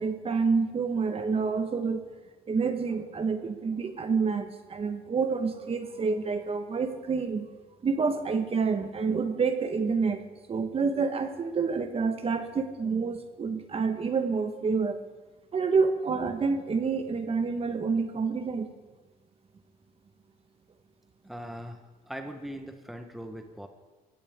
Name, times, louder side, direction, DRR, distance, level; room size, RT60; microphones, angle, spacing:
voice 1, 0.0-2.0 2.5-7.5 7.8-15.0 15.5-18.7, right 5 dB, 35° right, 7 dB, 1.5 m, -28 dB
voice 2, 21.2-23.7, equal, ahead, 5 dB, 1.3 m, -40 dB
22.5 x 16.5 x 3.8 m, 1.2 s
cardioid pair, 110°, 17 cm